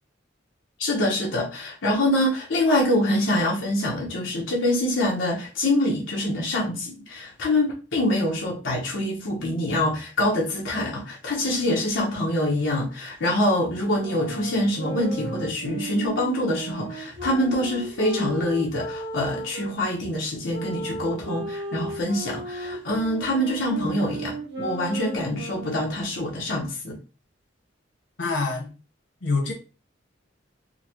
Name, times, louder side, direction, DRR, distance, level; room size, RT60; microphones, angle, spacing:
voice 1, 0.8-27.0, left 1 dB, 90° left, -3 dB, 1.0 m, -25 dB
sound 1, 13.9-19.7 20.5-26.1, right 2 dB, 70° right, 1.4 m, -35 dB
voice 2, 28.2-28.7 29.2-29.5, left 3 dB, 70° left, 0 dB, 1.1 m, -25 dB
3.8 x 2.2 x 3.0 m, 0.34 s
head